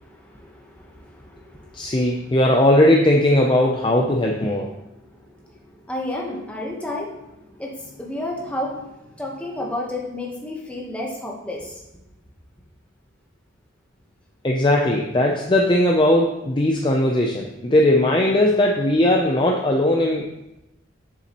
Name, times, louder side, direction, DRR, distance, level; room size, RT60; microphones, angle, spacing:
voice 1, 0.0-2.0 5.0-11.8, left 1 dB, 5° left, -2 dB, 1.1 m, -32 dB
voice 2, 1.7-4.7 14.4-20.3, left 1 dB, 25° left, 0 dB, 0.5 m, -18 dB
7.0 x 6.9 x 3.0 m, 0.91 s
head